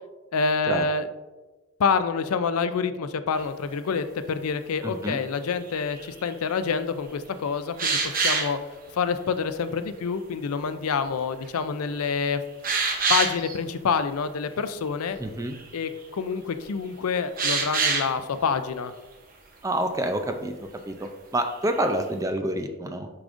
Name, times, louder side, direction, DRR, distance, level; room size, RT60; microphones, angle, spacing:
voice 1, 0.3-1.1 1.8-8.6 8.9-12.4 13.1-15.2 15.7-18.9, left 5 dB, 80° left, 11 dB, 0.4 m, -27 dB
sound 1, 3.4-3.5 5.7-6.3 7.8-8.5 11.5-11.6 12.0-12.1 12.6-13.6 15.2-15.3 15.5-15.9 17.4-18.1 21.5-21.8, right 4 dB, 40° right, 0.8 m, -25 dB
voice 2, 4.8-5.2 15.2-15.6 19.6-20.5 20.9-23.1, right 1 dB, 15° right, 6 dB, 0.4 m, -28 dB
8.3 x 5.0 x 2.5 m, 1.2 s
head